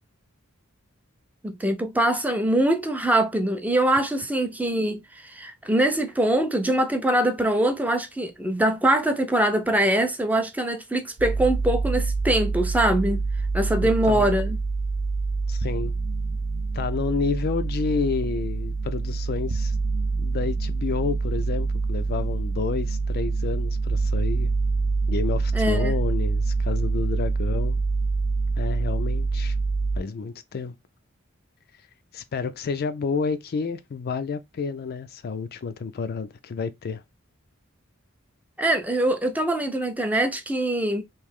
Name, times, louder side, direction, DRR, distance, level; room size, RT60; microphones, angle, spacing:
voice 1, 1.4-13.2 13.5-14.6 25.5-25.9 38.6-41.0, right 1 dB, 5° right, 0.5 m, -23 dB
sound 1, 11.2-30.0, right 3 dB, 80° right, 0.7 m, -26 dB
voice 2, 13.8-14.3 15.5-15.9 16.7-19.8 20.2-24.5 25.1-27.8 28.6-29.6 30.0-30.7 32.1-37.0, left 5 dB, 45° left, 0.4 m, -30 dB
3.1 x 2.7 x 3.5 m
head